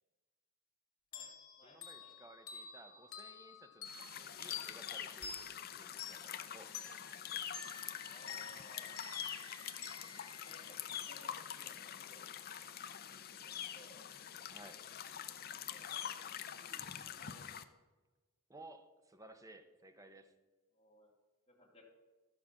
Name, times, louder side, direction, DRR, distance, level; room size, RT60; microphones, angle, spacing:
sound 1, 1.1-11.4, left 6 dB, 90° left, 1.9 m, -50 dB
voice 1, 1.1-2.1 8.0-9.0 9.9-10.1 10.4-12.3 13.4-14.1 15.7-16.2 16.6-17.5 20.7-21.1 21.5-21.8, left 1 dB, 25° left, -2 dB, 2.4 m, -61 dB
voice 2, 1.6-6.7 14.5-14.8 18.5-20.3, right 2 dB, 15° right, 8 dB, 0.8 m, -57 dB
sound 2, 3.9-17.6, left 9 dB, 45° left, 0.6 m, -45 dB
13.5 x 5.0 x 7.3 m, 1.2 s
head